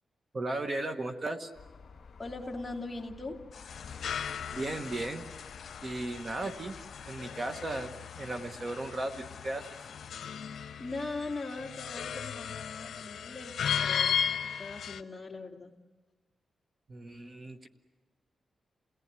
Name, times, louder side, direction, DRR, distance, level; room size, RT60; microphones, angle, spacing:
voice 1, 0.3-1.5 4.5-5.2 5.8-6.7 7.1-9.7 16.9-17.7, right 2 dB, 30° right, 6 dB, 1.1 m, -36 dB
sound 1, 1.5-7.1, left 5 dB, 40° left, 2.6 m, -53 dB
voice 2, 2.2-3.4 10.8-15.7, left 3 dB, 15° left, 0 dB, 2.4 m, -40 dB
sound 2, 3.5-10.1, left 6 dB, 60° left, 1.7 m, -49 dB
sound 3, 3.7-15.0, left 8 dB, 85° left, 0.7 m, -36 dB
28.5 x 18.0 x 9.6 m, 1.3 s
wide cardioid pair, 150°, 0 cm